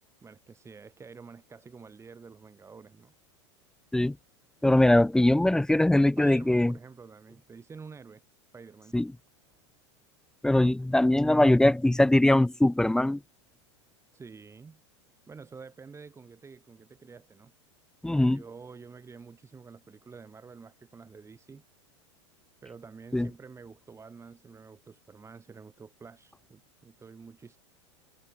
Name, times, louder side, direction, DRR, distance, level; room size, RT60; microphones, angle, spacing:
voice 1, 0.2-3.1 5.9-8.2 8.5-9.0 14.1-14.8 15.3-17.5 18.1-21.6 22.6-27.6, right 5 dB, 20° right, 7.0 m, -48 dB
voice 2, 4.6-6.7 8.9-9.1 10.4-13.2 18.0-18.4 23.1-23.3, left 1 dB, 5° left, 0.5 m, -21 dB
hypercardioid pair, 110°, 15 cm